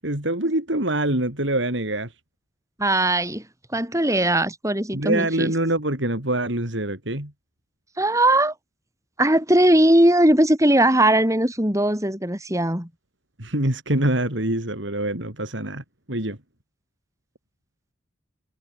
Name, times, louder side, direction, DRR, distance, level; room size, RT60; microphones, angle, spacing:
voice 1, 0.0-2.1 4.9-7.3 13.4-16.4, right 1 dB, 70° right, 5.0 m, -25 dB
voice 2, 2.8-3.4 3.7-5.5 8.0-8.5 9.2-12.9, right 1 dB, 15° right, 7.4 m, -19 dB
head